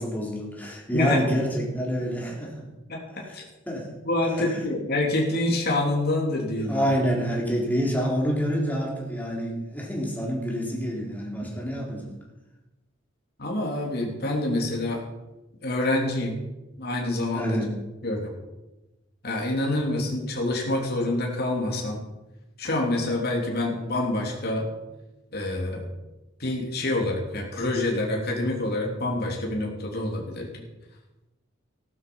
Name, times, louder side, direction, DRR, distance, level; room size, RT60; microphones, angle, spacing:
voice 1, 0.0-2.7 3.2-3.9 4.3-4.6 6.7-12.1 17.3-17.8, equal, 10° left, -3 dB, 4.0 m, -28 dB
voice 2, 0.9-1.3 2.9-3.4 4.0-6.8 11.4-11.5 13.4-15.0 15.6-16.4 16.8-17.6 18.0-18.3 19.2-22.0 22.6-24.7 25.3-25.9 26.4-30.6, left 1 dB, 55° left, -1 dB, 3.2 m, -27 dB
16.0 x 12.0 x 5.5 m, 1.0 s
head